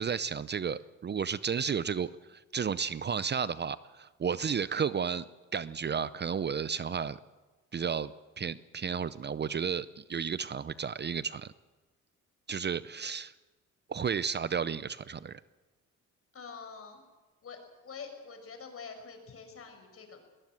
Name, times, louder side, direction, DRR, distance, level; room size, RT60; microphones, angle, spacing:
voice 1, 0.0-5.2 5.5-7.2 7.7-8.1 8.4-11.5 12.5-13.3 13.9-15.4, right 6 dB, 35° right, 16 dB, 0.6 m, -32 dB
voice 2, 16.3-17.0 17.4-20.2, left 5 dB, 50° left, 6 dB, 6.0 m, -46 dB
21.5 x 20.0 x 7.7 m, 1.3 s
cardioid pair, 90°, 30 cm